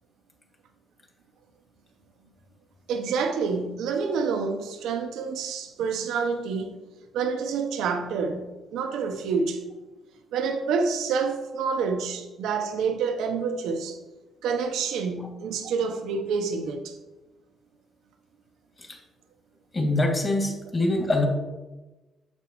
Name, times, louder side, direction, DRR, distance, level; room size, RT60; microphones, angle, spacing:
voice 1, 2.9-6.7 7.1-9.6 10.3-14.0 14.4-17.0, right 5 dB, 85° right, 4 dB, 0.8 m, -28 dB
voice 2, 19.7-21.3, left 2 dB, 30° left, 0 dB, 2.3 m, -24 dB
8.6 x 7.4 x 3.1 m, 1.1 s
cardioid pair, 90°, 0 cm